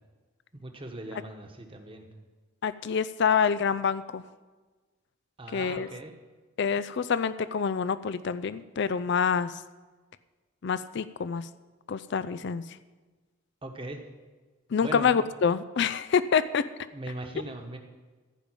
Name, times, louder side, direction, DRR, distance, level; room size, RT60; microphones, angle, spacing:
voice 1, 0.5-2.1 5.4-6.1 13.6-14.0 14.8-15.1 16.9-17.8, right 1 dB, 25° right, 4 dB, 1.2 m, -39 dB
voice 2, 2.6-4.2 5.5-5.9 6.6-9.5 10.6-11.5 11.9-12.6 14.7-16.7, left 6 dB, 50° left, 14 dB, 0.4 m, -26 dB
15.0 x 5.3 x 8.9 m, 1.3 s
head